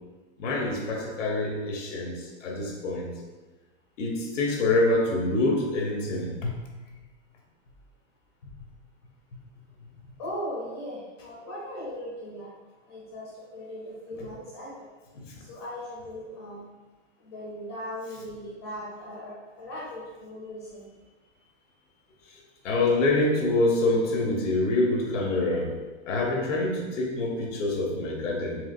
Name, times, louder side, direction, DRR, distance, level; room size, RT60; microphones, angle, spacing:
voice 1, 0.4-2.1 2.4-3.1 4.0-6.5 14.2-14.3 15.1-15.2 22.6-25.7 26.1-28.6, left 2 dB, 90° left, 0 dB, 1.2 m, -26 dB
voice 2, 10.2-12.5 12.9-14.7 15.5-16.6 17.3-20.8, equal, 25° left, -6 dB, 0.5 m, -38 dB
4.9 x 3.4 x 2.5 m, 1.2 s
supercardioid pair, 180°, 36 cm